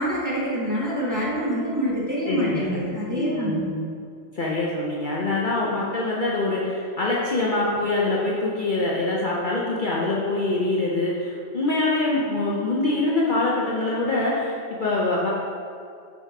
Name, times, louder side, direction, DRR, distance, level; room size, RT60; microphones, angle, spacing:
voice 1, 0.0-3.6, equal, 15° right, -7 dB, 1.0 m, -26 dB
voice 2, 2.3-2.8 3.1-3.9 4.3-15.3, left 2 dB, 50° left, -4 dB, 0.7 m, -24 dB
5.5 x 4.1 x 4.8 m, 2.4 s
omnidirectional pair, 1.2 m